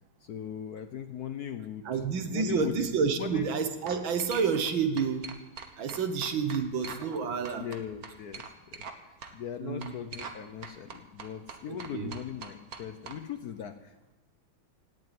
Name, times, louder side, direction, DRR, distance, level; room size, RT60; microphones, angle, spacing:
voice 1, 0.2-2.9 3.2-3.5 7.6-14.1, left 9 dB, 65° left, 9 dB, 1.0 m, -39 dB
voice 2, 1.9-5.2 5.8-7.7 9.6-9.9 11.7-12.1, right 6 dB, 70° right, 8 dB, 2.0 m, -29 dB
sound 1, 3.1-3.4 3.9-4.7 5.0-7.2 7.4-9.0 9.2-9.3 9.8-10.4 10.6-13.2, right 5 dB, 50° right, 1.6 m, -43 dB
17.5 x 7.5 x 9.2 m, 1.1 s
omnidirectional pair, 2.2 m